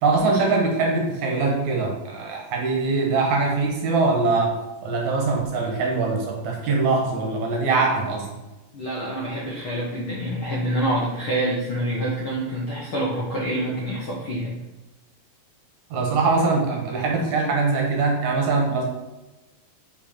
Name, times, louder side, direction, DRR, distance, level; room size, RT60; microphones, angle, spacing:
voice 1, 0.0-4.5 4.8-8.3 15.9-18.8, right 3 dB, 70° right, 0 dB, 2.2 m, -22 dB
voice 2, 8.7-14.5, right 1 dB, 60° left, -6 dB, 1.4 m, -26 dB
5.4 x 4.8 x 4.4 m, 1.1 s
omnidirectional pair, 3.9 m